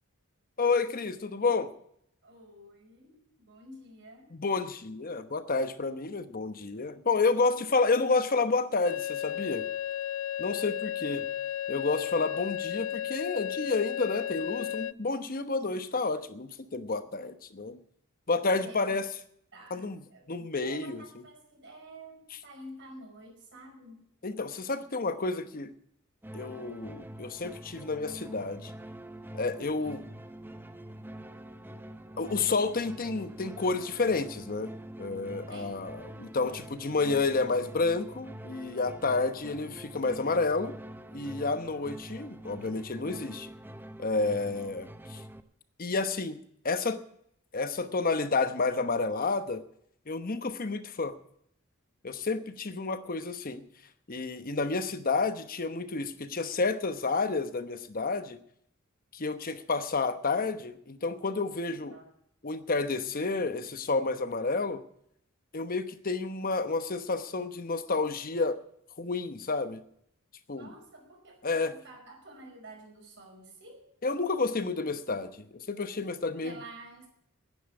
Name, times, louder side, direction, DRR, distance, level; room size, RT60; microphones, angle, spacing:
voice 1, 0.6-1.7 4.3-9.7 10.4-11.2 11.7-17.8 18.3-19.1 19.7-20.0 20.3-21.0 24.2-25.7 26.3-28.7 29.3-30.0 32.2-34.7 35.0-40.7 41.1-43.5 44.0-45.2 45.8-46.4 46.6-47.0 47.5-49.6 50.1-51.2 52.0-53.6 54.1-58.4 59.1-62.0 62.4-64.8 65.5-68.6 69.0-69.8 70.5-70.7 71.4-71.7 74.0-76.6, left 3 dB, 45° left, 11 dB, 1.0 m, -30 dB
voice 2, 2.2-4.3 7.2-7.6 18.5-19.0 19.5-24.0 29.8-30.0 35.5-35.8 44.4-44.5 61.9-62.1 70.6-73.9 76.4-77.1, right 1 dB, 60° right, 1 dB, 5.2 m, -50 dB
sound 1, 8.8-14.9, left 11 dB, 80° left, 0.5 m, -34 dB
sound 2, 26.2-45.4, right 1 dB, 10° right, 0.7 m, -45 dB
10.0 x 9.9 x 9.5 m, 0.70 s
head